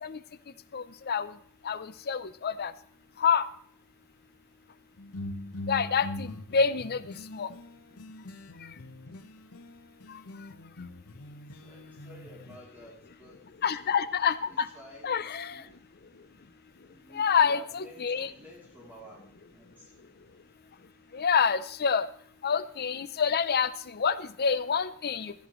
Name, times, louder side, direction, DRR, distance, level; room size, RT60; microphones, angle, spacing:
voice 1, 0.7-1.3 1.6-2.7 3.2-3.5 5.7-7.5 10.1-10.2 13.6-14.7 15.0-15.6 17.1-18.3 21.1-22.1 22.4-25.3, left 6 dB, 45° left, 14 dB, 0.6 m, -27 dB
sound 1, 5.0-9.7 10.0-12.6, left 1 dB, 85° left, 1.1 m, -42 dB
voice 2, 11.0-13.4 14.5-15.8 16.9-19.9, equal, 10° right, -4 dB, 3.2 m, -52 dB
15.5 x 14.0 x 3.2 m, 0.62 s
head